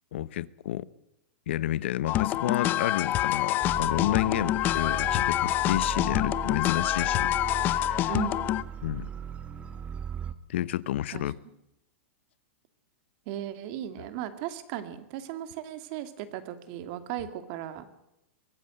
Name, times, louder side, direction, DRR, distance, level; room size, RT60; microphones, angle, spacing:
voice 1, 0.1-0.8 1.5-7.4 7.7-8.1 8.8-9.1 10.5-11.4, left 13 dB, 70° left, 0.8 m, -30 dB
sound 1, 2.1-8.6, left 14 dB, 30° left, 0.7 m, -26 dB
sound 2, 3.6-10.3, right 8 dB, 20° right, 1.3 m, -38 dB
voice 2, 8.1-8.4 11.1-11.3 13.3-17.9, right 12 dB, 45° right, 2.5 m, -36 dB
23.0 x 15.0 x 7.9 m
supercardioid pair, 145°, 6 cm